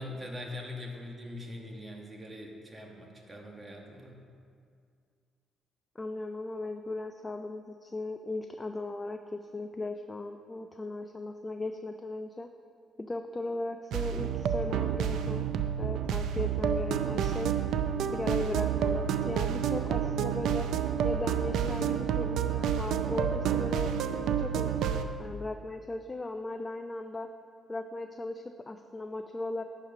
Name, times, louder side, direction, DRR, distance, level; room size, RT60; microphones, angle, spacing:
voice 1, 0.0-4.2, left 1 dB, 25° right, 1 dB, 1.4 m, -42 dB
voice 2, 6.0-12.5 13.0-15.4 15.8-17.5 18.1-20.7 21.0-23.9 24.4-27.3 27.7-29.6, left 2 dB, 20° left, 6 dB, 0.4 m, -37 dB
sound 1, 13.9-25.0, right 8 dB, 80° right, 0.4 m, -29 dB
10.5 x 4.6 x 5.8 m, 2.2 s
cardioid pair, 90°, 0 cm